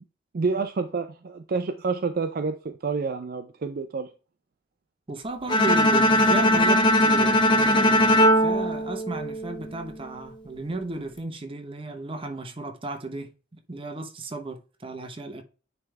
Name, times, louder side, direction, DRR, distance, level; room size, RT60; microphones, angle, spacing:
voice 1, 0.3-4.1, right 4 dB, 50° right, 0.4 m, -28 dB
voice 2, 5.1-7.5 8.4-13.3 13.7-15.4, right 2 dB, 30° right, 0.9 m, -34 dB
Bowed string instrument, 5.5-9.7, equal, 25° left, 1.1 m, -20 dB
9.4 x 3.5 x 3.3 m
head